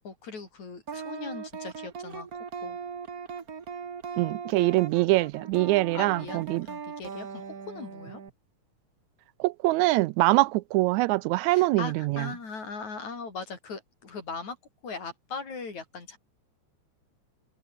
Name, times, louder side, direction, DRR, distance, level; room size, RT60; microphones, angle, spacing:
voice 1, 0.0-2.3 2.6-2.8 5.9-8.2 11.5-14.6 14.8-16.2, left 4 dB, 70° left, 6.6 m, -39 dB
sound 1, 0.9-8.3, right 6 dB, 35° right, 1.7 m, -39 dB
voice 2, 4.2-6.7 9.4-12.3, right 19 dB, 80° right, 1.8 m, -24 dB
omnidirectional pair, 3.4 m